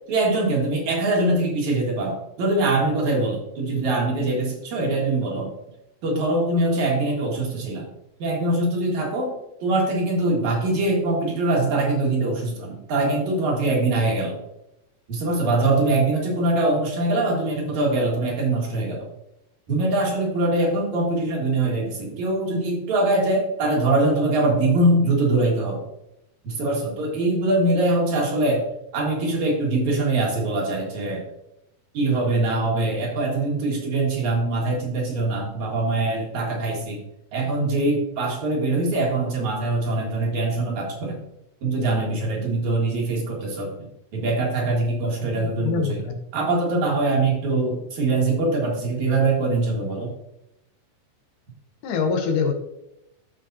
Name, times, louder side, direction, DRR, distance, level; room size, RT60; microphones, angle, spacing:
voice 1, 0.1-5.5 6.0-7.9 8.2-9.3 9.6-14.4 15.1-19.1 19.7-25.8 26.4-28.7 28.9-31.2 31.9-37.0 37.3-41.2 41.6-46.0 46.3-50.1, right 2 dB, 65° right, -1 dB, 3.1 m, -23 dB
voice 2, 45.6-46.1 51.8-52.5, left 5 dB, 80° left, 4 dB, 2.6 m, -23 dB
13.0 x 5.2 x 2.7 m, 0.85 s
omnidirectional pair, 3.6 m